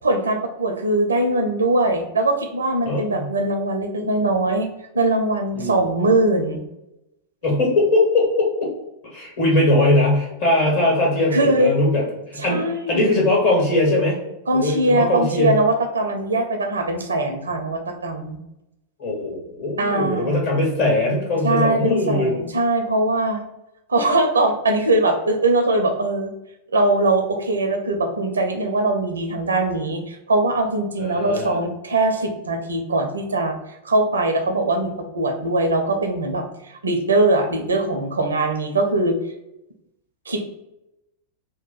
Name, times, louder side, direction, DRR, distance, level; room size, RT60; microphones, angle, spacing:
voice 1, 0.0-4.7 4.9-6.6 11.3-11.7 12.4-13.1 14.5-18.4 19.8-20.4 21.4-23.4 23.9-26.3 26.7-33.6 33.8-39.1 40.3-40.5, right 2 dB, 75° right, 4 dB, 0.5 m, -21 dB
voice 2, 2.8-3.3 5.5-5.9 7.4-8.7 9.0-14.2 14.5-15.6 19.0-22.4 31.0-31.6, left 2 dB, 55° left, -2 dB, 1.5 m, -20 dB
2.9 x 2.2 x 4.0 m, 0.89 s
figure-of-eight pair, 90°, 0 cm